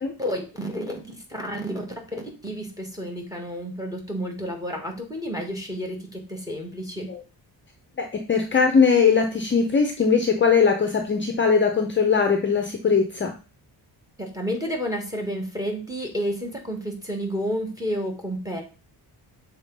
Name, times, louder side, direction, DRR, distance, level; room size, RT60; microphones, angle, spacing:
voice 1, 0.2-7.1 14.2-18.6, equal, 10° right, 2 dB, 1.5 m, -31 dB
voice 2, 8.0-13.4, left 5 dB, 30° left, 5 dB, 0.6 m, -20 dB
6.8 x 3.6 x 5.3 m, 0.34 s
wide cardioid pair, 170°, 41 cm